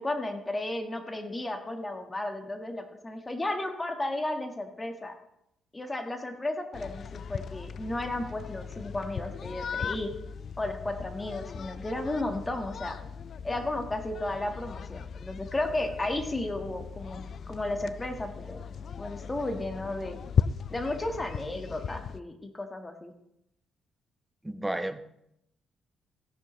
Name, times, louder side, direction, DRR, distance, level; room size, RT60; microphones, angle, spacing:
voice 1, 0.0-5.2 5.7-10.1 10.6-13.0 13.4-17.2 17.5-18.6 19.0-20.2 20.7-23.1, left 1 dB, 20° left, 5 dB, 1.6 m, -33 dB
sound 1, 6.7-22.2, left 7 dB, 55° left, 0.4 m, -37 dB
voice 2, 24.4-25.0, right 1 dB, 10° right, 9 dB, 0.9 m, -32 dB
16.0 x 10.0 x 3.2 m, 0.78 s
cardioid pair, 90°, 0 cm